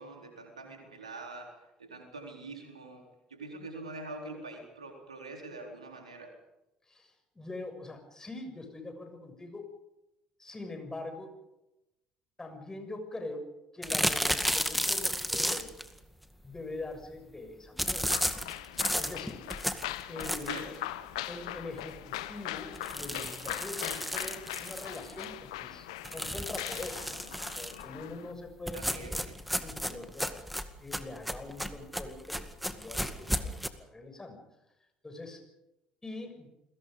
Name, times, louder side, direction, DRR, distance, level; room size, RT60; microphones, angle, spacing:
voice 1, 0.0-3.0 3.3-6.3 20.5-20.7 28.7-29.4, right 2 dB, 85° right, 2 dB, 4.1 m, -44 dB
voice 2, 6.9-9.7 10.4-11.3 12.4-13.5 13.7-15.7 16.4-18.1 18.9-19.5 20.1-20.6 21.3-27.2 27.5-29.2 29.5-30.3 30.8-33.5 33.8-34.4 35.0-35.4 36.0-36.5, left 2 dB, 15° left, 6 dB, 6.6 m, -43 dB
sound 1, 13.8-15.9 17.8-20.7 21.2-21.3 21.6-21.7 22.0-22.1 22.7-25.2 26.0-27.8 28.7-33.7, equal, ahead, 2.1 m, -33 dB
sound 2, 18.1-28.3, left 15 dB, 70° left, 1.1 m, -41 dB
29.5 x 21.5 x 5.3 m, 0.93 s
figure-of-eight pair, 55°, 3 cm